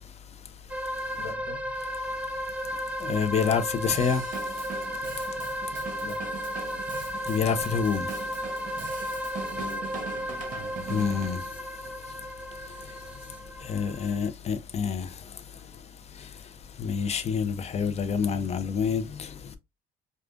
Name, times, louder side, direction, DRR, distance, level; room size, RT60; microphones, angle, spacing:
sound 1, 0.7-14.3, equal, 10° right, 0.7 m, -34 dB
voice 1, 1.2-1.6 6.0-6.3 9.5-10.1 19.4-19.6, left 5 dB, 65° left, 0.9 m, -42 dB
voice 2, 3.0-4.2 7.3-8.1 10.9-11.4 13.7-15.1 16.8-19.3, left 6 dB, 40° left, 0.7 m, -27 dB
Drum kit / Drum, 3.9-11.4, right 6 dB, 50° right, 1.0 m, -41 dB
4.9 x 2.4 x 2.5 m
cardioid pair, 110°, 17 cm